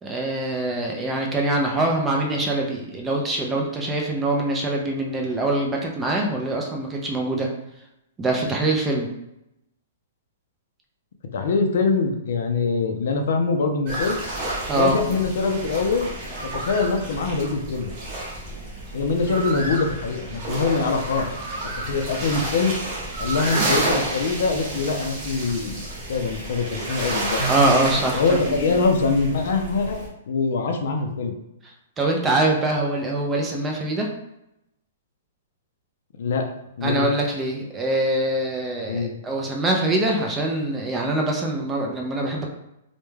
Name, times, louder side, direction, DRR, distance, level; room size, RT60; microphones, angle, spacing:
voice 1, 0.0-7.5 8.2-9.1 14.7-15.0 27.4-28.4 32.0-34.1 36.8-42.5, right 2 dB, 10° right, 0 dB, 0.3 m, -24 dB
voice 2, 11.3-14.2 14.7-16.1 16.5-17.9 18.9-21.3 21.9-22.8 23.2-27.4 28.1-31.3 36.2-36.5 36.8-37.1 38.8-39.1, left 4 dB, 60° left, 5 dB, 0.4 m, -23 dB
sound 1, 13.9-30.1, right 1 dB, 35° right, 0.7 m, -30 dB
sound 2, 26.3-29.9, right 5 dB, 85° right, 0.9 m, -35 dB
2.2 x 2.1 x 3.1 m, 0.85 s
hypercardioid pair, 160°, 0 cm